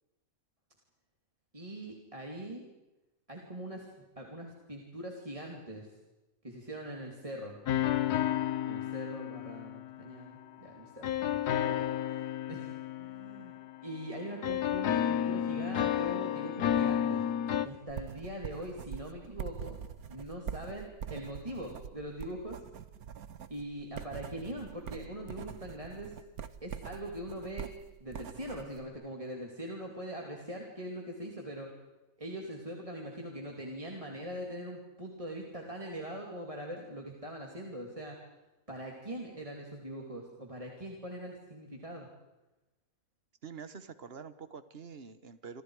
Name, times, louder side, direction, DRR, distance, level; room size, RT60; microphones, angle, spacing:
voice 1, 1.5-2.6 3.3-5.9 6.4-7.6 8.7-13.5 13.8-17.2 17.6-19.8 20.1-22.6 23.5-26.1 26.6-27.7 28.0-31.7 32.2-38.2 38.7-42.1, right 1 dB, 20° right, 0 dB, 3.0 m, -42 dB
sound 1, 7.7-10.3 11.0-14.1 14.4-17.7, left 10 dB, 80° left, 1.5 m, -31 dB
sound 2, 17.9-28.8, right 8 dB, 70° right, 1.5 m, -44 dB
voice 2, 43.4-45.6, right 6 dB, 40° right, 11 dB, 1.5 m, -46 dB
28.5 x 27.0 x 4.9 m, 1.0 s
omnidirectional pair, 1.6 m